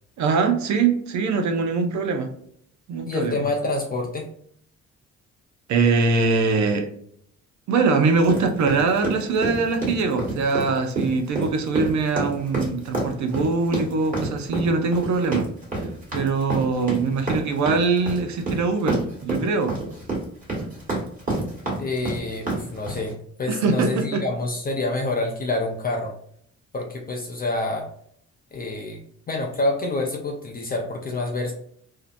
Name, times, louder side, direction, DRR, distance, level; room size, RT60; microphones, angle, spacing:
voice 1, 0.2-2.3 2.9-3.4 5.7-6.9 7.7-15.5 16.1-19.8 23.5-24.2, right 4 dB, 70° right, 6 dB, 0.5 m, -22 dB
voice 2, 3.1-4.3 21.8-26.1 26.7-27.9 28.5-29.0 29.3-31.5, left 2 dB, 30° left, 0 dB, 0.5 m, -27 dB
sound 1, 8.2-23.1, right 2 dB, 25° right, 1.4 m, -28 dB
2.7 x 2.1 x 2.4 m, 0.64 s
cardioid pair, 90°, 30 cm